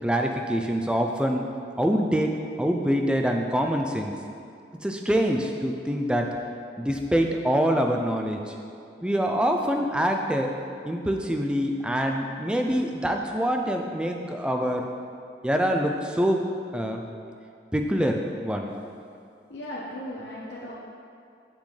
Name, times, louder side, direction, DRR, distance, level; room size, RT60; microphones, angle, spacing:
voice 1, 0.0-1.5 1.8-4.1 4.8-6.3 6.8-8.5 9.0-10.5 10.9-14.9 15.4-16.4 16.7-17.0 17.7-18.7, equal, 5° right, 3 dB, 0.4 m, -25 dB
voice 2, 19.5-20.7, left 1 dB, 80° left, -6 dB, 0.9 m, -36 dB
7.5 x 6.9 x 3.3 m, 2.5 s
head